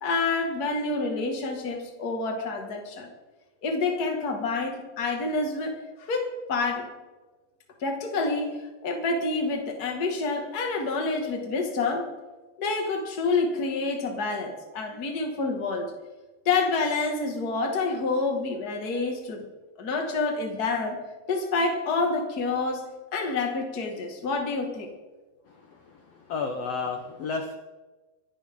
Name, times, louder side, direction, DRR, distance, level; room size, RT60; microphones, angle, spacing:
voice 1, 0.0-3.1 3.6-6.9 7.8-12.1 12.6-15.9 16.5-19.5 19.8-21.0 21.3-22.8 23.1-24.9, left 3 dB, 30° left, 2 dB, 1.9 m, -28 dB
voice 2, 25.7-27.6, left 4 dB, 75° left, 4 dB, 1.4 m, -32 dB
24.0 x 11.5 x 3.8 m, 1.2 s
omnidirectional pair, 4.3 m